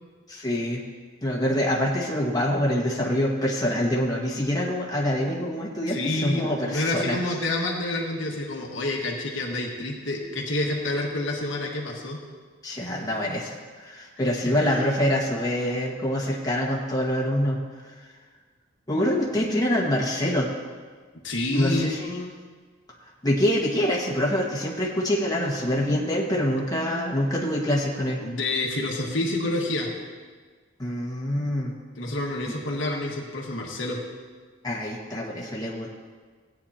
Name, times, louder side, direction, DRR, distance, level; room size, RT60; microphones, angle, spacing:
voice 1, 0.3-0.8 1.2-7.3 12.6-17.6 18.0-18.1 18.9-20.5 21.5-22.3 23.2-28.2 30.8-31.7 32.5-32.6 34.6-36.0, left 1 dB, 20° left, -3 dB, 1.7 m, -25 dB
voice 2, 5.9-12.2 14.4-14.8 21.2-21.9 28.2-29.9 31.9-34.0, left 2 dB, 80° left, -1 dB, 1.7 m, -28 dB
17.0 x 9.3 x 2.9 m, 1.5 s
head